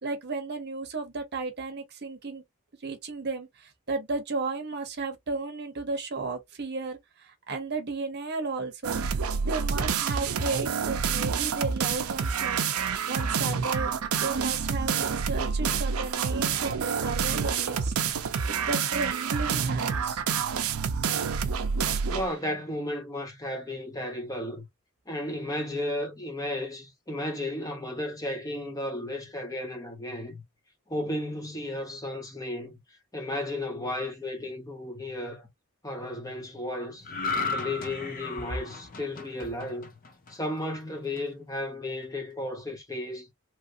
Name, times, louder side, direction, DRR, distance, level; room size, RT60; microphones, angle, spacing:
voice 1, 0.0-2.4 2.8-9.0 9.5-12.6 13.1-13.9 14.2-17.9 18.2-20.2, right 3 dB, 50° right, 0.8 m, -34 dB
sound 1, 8.8-22.3, right 6 dB, 85° right, 0.5 m, -28 dB
voice 2, 22.1-24.7 25.1-30.4 30.9-32.8 33.1-35.5 35.8-37.1 37.5-39.9 40.3-43.3, left 1 dB, 15° left, 0.9 m, -34 dB
sound 2, 37.0-40.5 40.9-41.2, left 4 dB, 40° left, 0.6 m, -34 dB
3.1 x 2.6 x 2.5 m
head